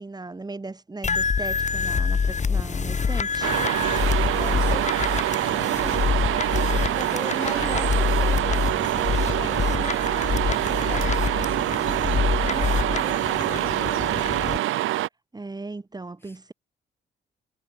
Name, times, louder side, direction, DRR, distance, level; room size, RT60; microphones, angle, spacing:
voice 1, 0.0-3.5 15.3-16.5, right 3 dB, 20° right, 3.5 m, -37 dB
sound 1, 1.0-14.6, left 5 dB, 35° left, 2.9 m, -26 dB
sound 2, 3.4-15.1, right 15 dB, 85° right, 2.3 m, -25 dB
voice 2, 4.3-10.2 10.5-12.1 12.3-14.6 16.2-16.4, left 1 dB, 10° left, 4.3 m, -41 dB
sound 3, 4.5-5.0 5.8-6.3 7.3-7.9 9.1-9.7 10.8-11.7, left 14 dB, 85° left, 3.7 m, -45 dB
cardioid pair, 90°, 20 cm